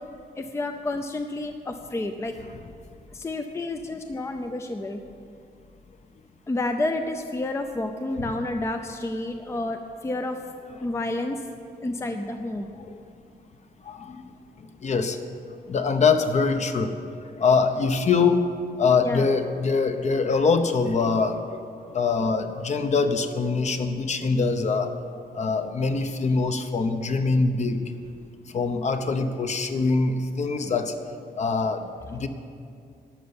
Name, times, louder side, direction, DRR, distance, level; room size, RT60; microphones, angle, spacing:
voice 1, 0.4-2.3 3.1-5.0 6.5-10.4 10.8-11.4 11.8-12.7 19.0-19.3, left 2 dB, 15° left, 6 dB, 0.5 m, -30 dB
voice 2, 13.9-14.3 14.8-15.2 15.7-16.9 17.2-18.5 18.8-21.6 21.9-24.9 25.3-27.8 28.5-30.9 31.4-32.3, left 4 dB, 45° left, 7 dB, 0.9 m, -23 dB
12.0 x 6.9 x 9.7 m, 2.4 s
wide cardioid pair, 145°, 17 cm